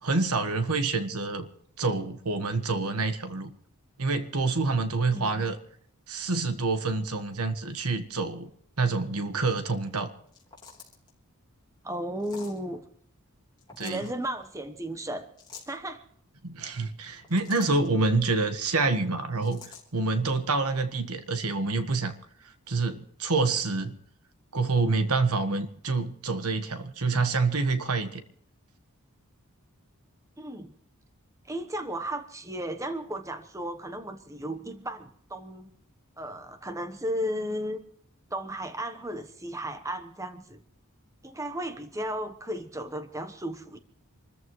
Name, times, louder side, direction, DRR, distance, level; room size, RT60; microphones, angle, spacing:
voice 1, 0.0-1.5 1.8-3.5 4.0-5.6 6.1-8.5 8.8-10.1 13.8-14.0 16.4-19.6 19.9-22.1 22.7-23.9 24.5-28.2, right 3 dB, 80° right, 9 dB, 1.4 m, -27 dB
voice 2, 5.1-5.5 11.8-12.8 13.8-15.3 15.7-16.0 30.4-30.7 31.4-35.7 36.2-37.8 38.3-40.6 41.2-43.8, right 1 dB, 15° right, 8 dB, 1.0 m, -34 dB
sound 1, 10.3-11.1 12.2-12.6 13.6-14.1 15.4-15.8 17.0-17.9 19.4-19.8, left 5 dB, 20° left, 3.6 m, -48 dB
27.0 x 14.0 x 3.2 m, 0.63 s
head